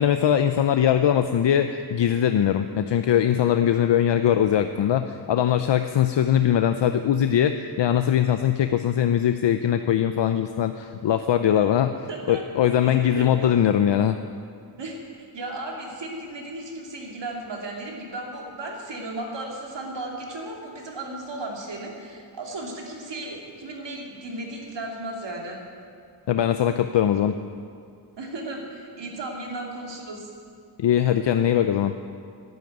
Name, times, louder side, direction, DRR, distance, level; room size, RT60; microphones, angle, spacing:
voice 1, 0.0-14.2 26.3-27.4 30.8-32.0, left 10 dB, 70° left, 9 dB, 0.6 m, -21 dB
voice 2, 12.1-13.5 14.7-25.6 28.2-30.3, right 2 dB, 70° right, 0 dB, 2.6 m, -35 dB
11.0 x 9.1 x 9.2 m, 2.2 s
wide cardioid pair, 80°, 45 cm